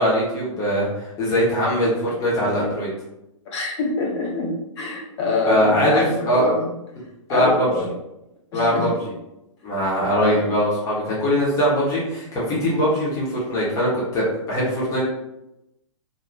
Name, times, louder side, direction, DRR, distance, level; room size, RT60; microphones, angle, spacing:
voice 1, 0.0-2.9 5.5-6.5 7.3-7.7 8.5-9.1 9.6-15.0, equal, 20° left, -7 dB, 0.9 m, -21 dB
voice 2, 3.5-6.6 7.3-7.9 8.5-8.9 10.2-10.4, left 2 dB, 55° left, -2 dB, 0.9 m, -25 dB
2.6 x 2.3 x 3.2 m, 0.90 s
hypercardioid pair, 125°, 17 cm